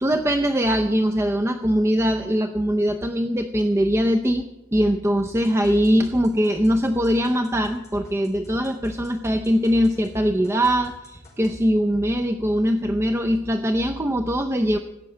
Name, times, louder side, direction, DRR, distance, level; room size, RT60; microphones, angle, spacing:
voice 1, 0.0-4.5 4.7-14.8, equal, 15° right, 5 dB, 0.6 m, -21 dB
sound 1, 5.2-10.2 10.4-11.6, left 1 dB, 15° left, 5.3 m, -49 dB
15.5 x 7.5 x 9.9 m, 1.0 s
head